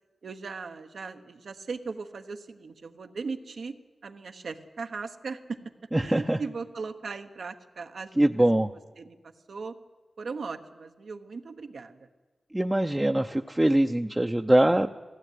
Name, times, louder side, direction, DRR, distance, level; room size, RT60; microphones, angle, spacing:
voice 1, 0.2-3.8 4.0-5.6 6.0-8.3 9.0-9.8 10.2-12.1, right 4 dB, 85° right, 7 dB, 1.1 m, -38 dB
voice 2, 5.9-6.4 8.2-8.7 12.5-14.9, right 1 dB, 15° right, 4 dB, 0.5 m, -23 dB
18.0 x 15.5 x 9.3 m, 1.3 s
wide cardioid pair, 85°, 0 cm